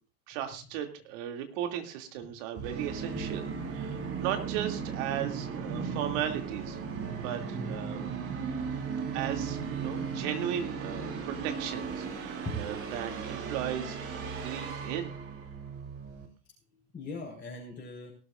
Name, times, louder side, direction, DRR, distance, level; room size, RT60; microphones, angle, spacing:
voice 1, 0.3-3.4 3.7-6.8 7.1-8.1 9.1-15.1, right 10 dB, 50° right, 4 dB, 2.8 m, -36 dB
Musical instrument, 2.5-16.3, right 5 dB, 30° right, 2.9 m, -36 dB
voice 2, 16.7-18.1, left 1 dB, 20° left, -3 dB, 4.7 m, -40 dB
18.5 x 12.5 x 2.6 m, 0.37 s
hypercardioid pair, 95°, 45 cm